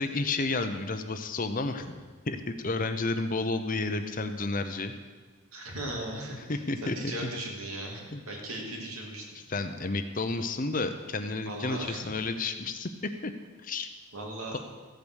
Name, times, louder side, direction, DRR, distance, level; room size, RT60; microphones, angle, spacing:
voice 1, 0.0-4.9 6.3-7.0 7.2-7.3 8.1-8.2 9.5-13.3 13.6-13.9, left 3 dB, 40° left, 8 dB, 0.8 m, -31 dB
voice 2, 5.5-9.2 11.4-12.1 14.1-14.6, right 1 dB, 80° right, -1 dB, 2.9 m, -38 dB
14.5 x 8.7 x 6.4 m, 1.4 s
head